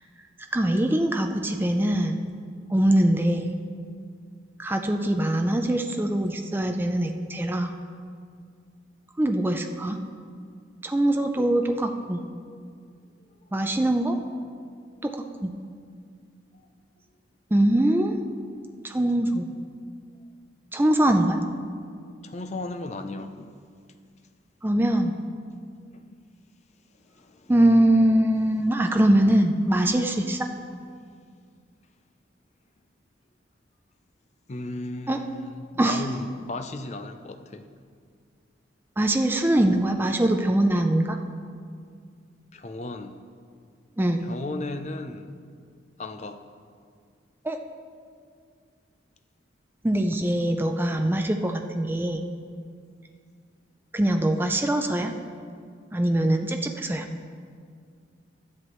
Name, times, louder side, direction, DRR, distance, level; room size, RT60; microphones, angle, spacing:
voice 1, 0.5-2.2 2.7-3.6 4.6-7.7 9.2-10.0 10.8-12.2 13.5-14.2 15.0-15.5 17.5-18.1 18.8-19.5 20.7-21.4 24.6-25.2 27.5-30.5 35.1-35.2 35.8-36.0 39.0-41.2 44.0-44.3 47.4-47.6 49.8-52.3 53.9-55.1 55.9-57.1, right 1 dB, 10° right, 5 dB, 0.4 m, -23 dB
voice 2, 22.2-23.6 25.9-26.0 27.0-27.7 34.5-37.7 42.5-43.2 44.2-45.3 46.0-46.4, left 2 dB, 35° left, 8 dB, 0.5 m, -36 dB
12.5 x 10.5 x 3.1 m, 2.1 s
head